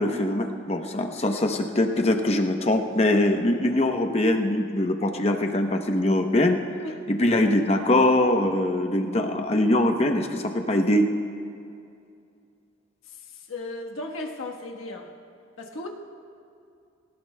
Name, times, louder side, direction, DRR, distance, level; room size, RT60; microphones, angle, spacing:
voice 1, 0.0-6.6 7.1-11.1, left 1 dB, 30° left, 5 dB, 0.8 m, -22 dB
voice 2, 13.1-15.1 15.6-15.9, left 2 dB, 80° left, 1 dB, 1.3 m, -36 dB
20.0 x 18.5 x 2.2 m, 2.5 s
head